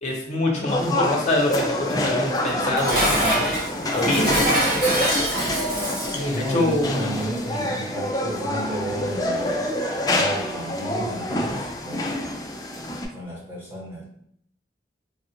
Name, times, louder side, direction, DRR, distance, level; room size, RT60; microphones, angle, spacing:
voice 1, 0.0-3.5 3.9-4.5 6.5-7.1, left 1 dB, 40° left, -1 dB, 0.8 m, -24 dB
sound 1, 0.7-13.1, left 1 dB, 20° left, 0.3 m, -27 dB
Dishes pots and pans, 2.4-6.3, right 1 dB, 55° right, 0.8 m, -24 dB
voice 2, 6.1-9.6 10.0-12.3 13.1-14.0, equal, 15° right, -7 dB, 1.1 m, -32 dB
3.4 x 2.4 x 2.8 m, 0.69 s
head